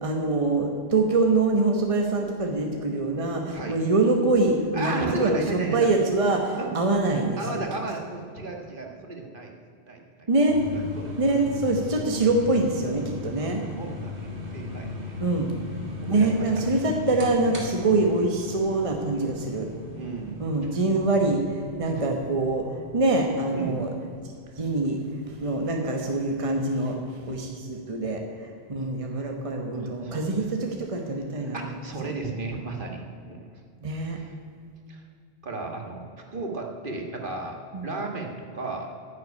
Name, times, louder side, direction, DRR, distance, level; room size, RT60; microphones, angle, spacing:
voice 1, 0.0-7.6 10.3-10.6 11.2-13.6 15.2-15.5 16.1-19.7 20.4-22.7 22.9-23.9 24.6-25.0 25.4-27.0 27.3-31.6 33.8-34.2 37.7-37.9, right 2 dB, 30° right, 2 dB, 1.2 m, -24 dB
voice 2, 3.5-3.8 4.7-5.9 6.6-6.7 7.4-9.5 9.9-10.3 10.7-11.3 12.1-12.2 13.3-15.1 16.0-16.5 17.5-17.6 19.1-19.3 19.9-20.8 21.8-22.0 23.5-23.8 26.8-27.0 29.1-29.3 29.7-30.2 31.5-33.4 34.1-34.3 34.9-35.0 35.4-36.0 36.3-37.6 37.8-38.9, right 3 dB, 50° right, 2 dB, 1.7 m, -34 dB
sound 1, 10.5-26.4, left 3 dB, 85° right, 2.8 m, -39 dB
9.8 x 7.9 x 9.6 m, 2.3 s
omnidirectional pair, 1.1 m